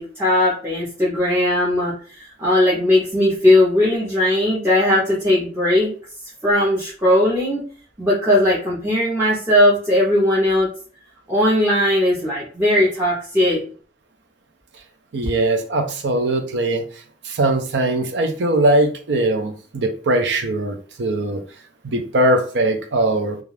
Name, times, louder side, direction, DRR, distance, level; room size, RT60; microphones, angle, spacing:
voice 1, 0.0-5.9 6.4-7.6 8.0-10.7 11.3-13.6, left 1 dB, 15° right, -8 dB, 0.7 m, -18 dB
voice 2, 15.1-16.8 17.2-21.4 21.8-23.4, right 1 dB, 75° right, 6 dB, 0.5 m, -20 dB
2.4 x 2.4 x 3.2 m, 0.41 s
head